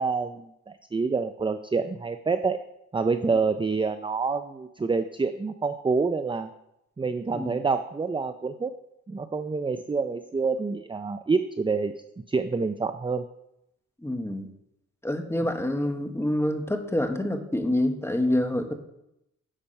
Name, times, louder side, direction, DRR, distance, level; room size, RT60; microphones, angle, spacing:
voice 1, 0.0-2.6 2.9-6.5 7.0-8.7 9.1-11.9 12.3-13.2, right 4 dB, 15° right, 10 dB, 0.5 m, -27 dB
voice 2, 14.0-14.5 15.0-18.7, left 1 dB, 10° left, 5 dB, 1.3 m, -27 dB
10.0 x 7.0 x 5.3 m, 0.84 s
cardioid pair, 95°, 32 cm